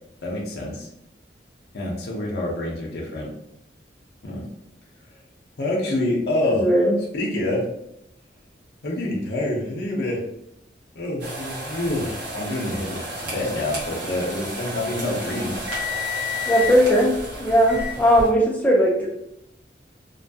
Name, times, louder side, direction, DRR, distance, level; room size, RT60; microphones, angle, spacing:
voice 1, 0.2-0.9 1.7-3.3 4.2-4.5 5.6-6.6 7.1-7.7 8.8-10.2 10.9-15.6, left 1 dB, 65° left, -2 dB, 0.6 m, -27 dB
voice 2, 6.4-6.9 16.5-17.1 17.4-19.1, equal, 10° left, -2 dB, 0.5 m, -18 dB
sound 1, 11.2-18.3, left 2 dB, 80° right, 1.1 m, -31 dB
2.8 x 2.3 x 2.7 m, 0.80 s
head